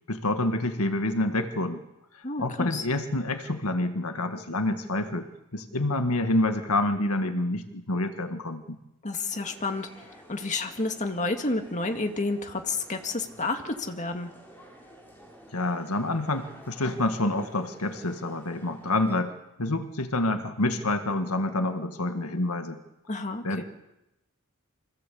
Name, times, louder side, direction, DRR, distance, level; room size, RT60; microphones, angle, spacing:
voice 1, 0.1-1.8 2.1-8.8 15.5-19.3 19.6-22.8 23.4-23.6, left 2 dB, 75° left, 7 dB, 1.8 m, -28 dB
voice 2, 2.2-2.8 9.0-9.9 10.3-14.3 23.1-23.6, left 3 dB, 35° left, 5 dB, 2.1 m, -30 dB
sound 1, 9.3-19.2, equal, 10° left, 5.3 m, -51 dB
25.5 x 16.0 x 8.5 m, 0.91 s
head